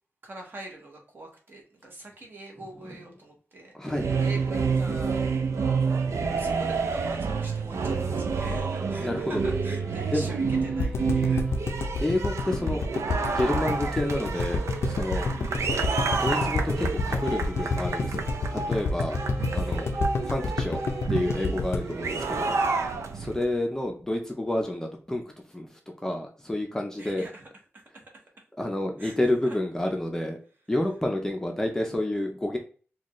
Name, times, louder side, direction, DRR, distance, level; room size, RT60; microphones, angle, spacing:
voice 1, 0.2-5.4 6.4-11.6 23.0-23.3 27.0-28.0 29.0-29.2 29.5-29.6, right 2 dB, 45° right, 0 dB, 1.1 m, -44 dB
voice 2, 3.8-4.1 9.0-9.4 10.1-10.3 12.0-12.9 13.3-15.3 16.2-19.2 19.5-19.9 20.3-20.8 21.1-22.6 23.1-25.2 25.5-27.3 28.6-30.4 30.7-32.6, left 1 dB, 10° left, 1 dB, 0.5 m, -29 dB
sound 1, 3.9-23.4, right 4 dB, 80° right, 0.4 m, -29 dB
sound 2, 8.5-23.4, equal, 10° right, 1.1 m, -47 dB
sound 3, 10.8-22.9 23.2-23.3 23.5-23.6, left 3 dB, 65° left, 0.5 m, -28 dB
4.0 x 2.3 x 3.0 m, 0.40 s
wide cardioid pair, 160°, 5 cm